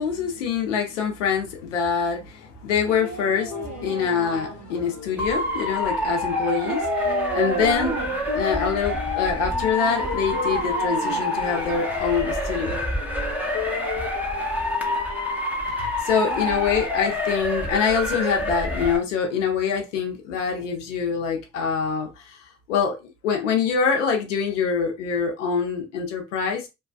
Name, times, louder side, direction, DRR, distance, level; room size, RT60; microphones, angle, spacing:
voice 1, 0.0-8.0 8.3-12.8 15.7-22.4 22.7-23.0 23.2-26.7, left 6 dB, 85° left, 0.7 m, -25 dB
sound 1, 2.9-16.8, left 6 dB, 50° left, 1.0 m, -38 dB
Dog, 2.9-4.9 6.6-8.3 10.0-12.1 12.5-12.6, right 5 dB, 45° right, 0.6 m, -32 dB
Motor vehicle (road) / Siren, 5.2-19.0, left 1 dB, 5° right, 0.8 m, -27 dB
2.7 x 2.3 x 2.3 m
hypercardioid pair, 55°, 36 cm